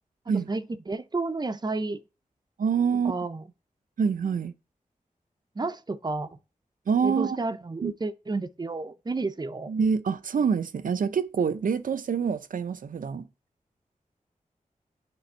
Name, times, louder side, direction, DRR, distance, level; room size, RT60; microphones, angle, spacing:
voice 1, 0.3-2.0 3.0-3.4 5.6-6.4 7.0-9.7, right 3 dB, 30° right, 0.6 m, -31 dB
voice 2, 2.6-3.1 4.0-4.5 6.9-7.4 7.8-7.9 9.7-13.3, right 6 dB, 80° right, 0.6 m, -26 dB
9.8 x 3.4 x 4.4 m
wide cardioid pair, 90°, 14 cm